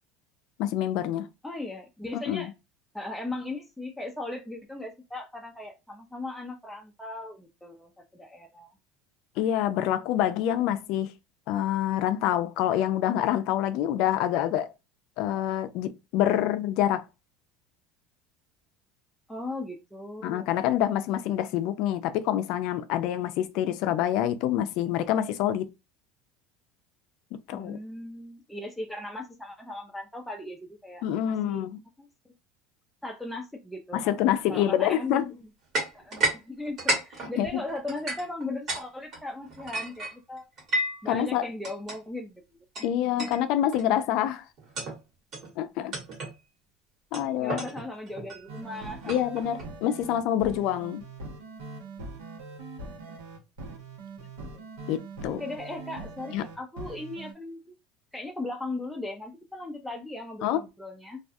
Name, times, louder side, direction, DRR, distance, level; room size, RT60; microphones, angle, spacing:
voice 1, 0.6-1.3 2.1-2.5 9.4-11.1 11.5-14.7 15.2-17.0 20.2-25.7 27.5-27.8 31.0-31.8 33.9-35.3 37.4-37.6 41.1-41.5 42.8-44.4 45.6-46.0 47.1-47.6 49.1-51.0 54.9-55.4 56.3-56.4 60.4-60.6, left 11 dB, 65° left, 0.4 m, -26 dB
voice 2, 1.4-2.5 2.9-8.7 19.3-20.5 27.5-31.6 32.0-32.3 33.0-34.2 34.5-35.5 35.9-40.5 41.0-42.9 43.2-43.3 47.4-49.2 54.2-54.3 54.5-54.7 55.2-57.7 58.1-61.2, left 2 dB, 5° left, 0.4 m, -38 dB
sound 1, 35.7-36.4 36.7-38.8 39.1-41.1 41.6-42.0 42.7-42.9 43.2-43.4 43.7-44.0 44.6-45.0 45.3-45.5 45.9-46.4 47.1-49.6, right 2 dB, 50° right, 1.3 m, -32 dB
sound 2, 48.5-57.3, right 3 dB, 90° right, 0.9 m, -42 dB
2.3 x 2.2 x 2.6 m
supercardioid pair, 105°, 0 cm